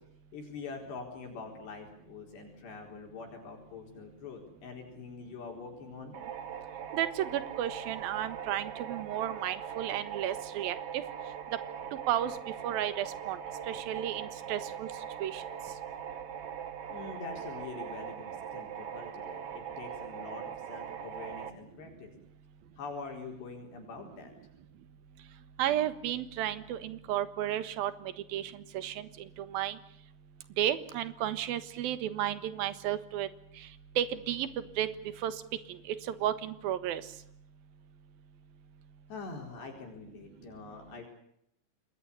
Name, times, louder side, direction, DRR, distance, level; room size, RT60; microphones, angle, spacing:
voice 1, 0.3-6.1 16.9-22.1 22.8-24.3 39.1-41.0, left 4 dB, 70° left, 2 dB, 6.4 m, -44 dB
sound 1, 6.1-21.5, right 8 dB, 85° right, 1.3 m, -41 dB
voice 2, 6.9-11.0 12.1-12.3 12.6-13.4 13.7-14.9 15.2-15.4 25.6-29.1 29.4-29.8 30.6-33.3 34.0-34.5 34.8-34.9 35.2-35.3 35.7-37.0, right 11 dB, 65° right, 13 dB, 2.9 m, -33 dB
27.5 x 21.0 x 8.5 m, 0.75 s
omnidirectional pair, 5.1 m